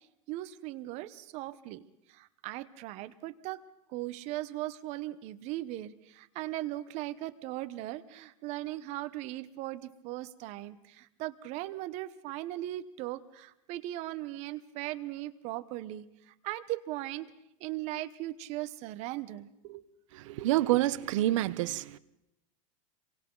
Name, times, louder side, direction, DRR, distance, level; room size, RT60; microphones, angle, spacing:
voice 1, 0.3-3.6 3.9-17.3 17.6-19.8 20.3-20.5, right 16 dB, 40° right, 1.1 m, -38 dB
voice 2, 20.1-22.0, right 15 dB, 65° right, 1.0 m, -28 dB
29.5 x 24.0 x 4.0 m
supercardioid pair, 155°, 18 cm